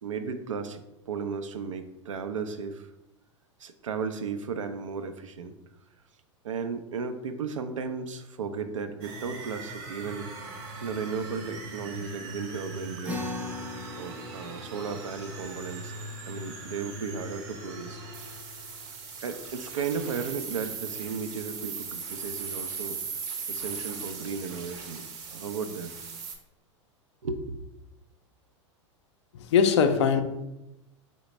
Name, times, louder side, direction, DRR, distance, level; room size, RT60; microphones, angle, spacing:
voice 1, 0.0-2.9 3.6-5.6 6.4-10.3 10.8-13.3 14.0-15.9 16.3-18.0 18.6-18.8 19.2-23.0 23.5-25.0 25.3-26.0 27.2-27.4, right 5 dB, 80° right, 9 dB, 0.4 m, -35 dB
sound 1, 9.0-26.4, right 4 dB, 50° right, 0.7 m, -39 dB
sound 2, 13.0-19.7, left 2 dB, 10° right, 0.5 m, -42 dB
voice 2, 29.3-30.2, left 6 dB, 65° left, 8 dB, 0.4 m, -21 dB
3.9 x 2.1 x 3.1 m, 0.94 s
hypercardioid pair, 95°, 16 cm